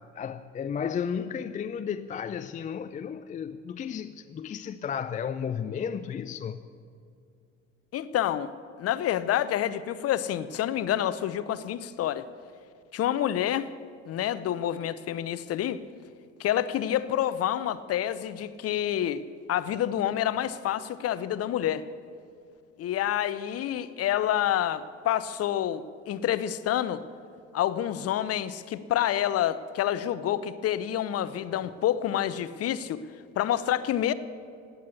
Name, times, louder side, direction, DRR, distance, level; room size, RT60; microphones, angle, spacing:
voice 1, 0.1-6.6, left 7 dB, 20° left, 0.5 m, -33 dB
voice 2, 7.9-8.5 8.8-12.3 12.9-13.7 14.1-15.8 16.4-19.2 19.5-21.8 22.8-27.0 27.5-33.0 33.4-34.1, left 11 dB, 40° left, 0.8 m, -28 dB
17.0 x 9.7 x 8.3 m
figure-of-eight pair, 60°, 38 cm